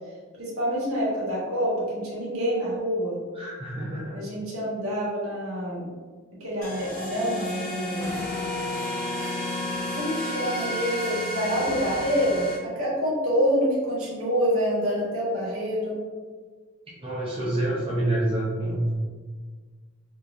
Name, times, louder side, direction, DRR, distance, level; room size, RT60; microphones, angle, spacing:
voice 1, 0.4-3.2 4.1-5.9 6.4-8.1 9.9-16.0, equal, 85° right, -7 dB, 1.3 m, -27 dB
voice 2, 3.3-4.2 17.0-18.9, right 1 dB, 25° right, -6 dB, 0.5 m, -27 dB
sound 1, 6.6-12.6, left 1 dB, 15° left, 0.9 m, -31 dB
3.5 x 2.9 x 2.5 m, 1.5 s
head